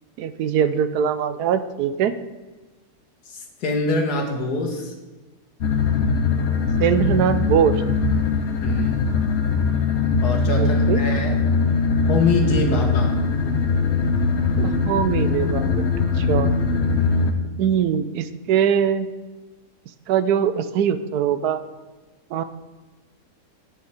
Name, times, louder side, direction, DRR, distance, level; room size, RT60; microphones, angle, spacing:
voice 1, 0.2-2.2 6.8-7.7 10.6-11.0 14.6-15.9 16.1-16.5 17.6-19.1 20.1-21.6 22.3-22.4, right 8 dB, 80° right, 13 dB, 1.1 m, -22 dB
voice 2, 3.3-4.9 8.6-9.1 10.2-11.4 12.1-13.2, left 3 dB, 75° left, 3 dB, 1.9 m, -24 dB
sound 1, 5.6-17.3, left 4 dB, 55° left, 0.9 m, -21 dB
9.3 x 7.0 x 4.9 m, 1.3 s
omnidirectional pair, 1.7 m